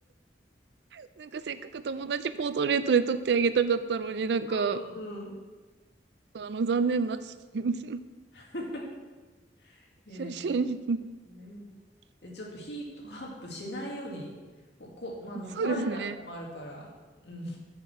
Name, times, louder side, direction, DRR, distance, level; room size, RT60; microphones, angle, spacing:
voice 1, 1.0-4.8 6.3-7.2 7.5-8.0 10.2-11.0 15.6-16.1, right 5 dB, 70° right, 13 dB, 0.4 m, -28 dB
voice 2, 4.5-5.3 8.3-8.8 9.6-10.6 11.2-11.6 12.2-14.3 14.8-16.8 17.2-17.6, equal, 70° left, -2 dB, 2.1 m, -40 dB
6.7 x 6.6 x 7.3 m, 1.3 s
head